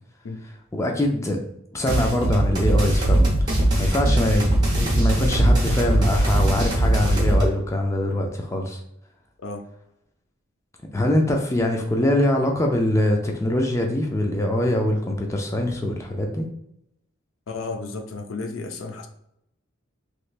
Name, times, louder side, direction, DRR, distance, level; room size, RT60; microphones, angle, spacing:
voice 1, 0.7-1.4 1.7-8.8 10.9-16.4, left 1 dB, 15° left, 2 dB, 0.4 m, -23 dB
sound 1, 1.9-7.4, right 1 dB, 20° right, 1.0 m, -20 dB
voice 2, 17.5-19.1, left 3 dB, 80° left, 5 dB, 0.5 m, -33 dB
3.3 x 3.1 x 2.4 m, 0.78 s
head